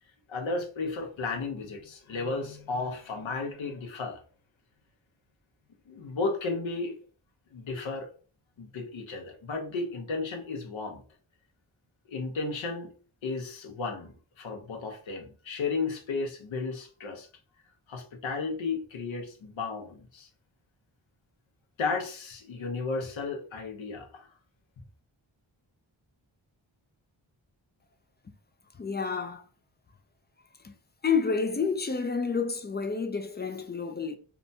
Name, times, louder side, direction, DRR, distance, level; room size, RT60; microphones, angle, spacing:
voice 1, 0.3-4.2 5.9-7.0 7.5-8.1 8.6-11.0 12.1-12.9 13.2-17.3 17.9-20.3 21.8-24.3, left 3 dB, 70° left, 0.8 m, -34 dB
voice 2, 28.8-29.4 30.6-30.7 31.0-34.2, left 5 dB, 25° left, 0.4 m, -29 dB
2.8 x 2.2 x 2.6 m
cardioid pair, 45°, 48 cm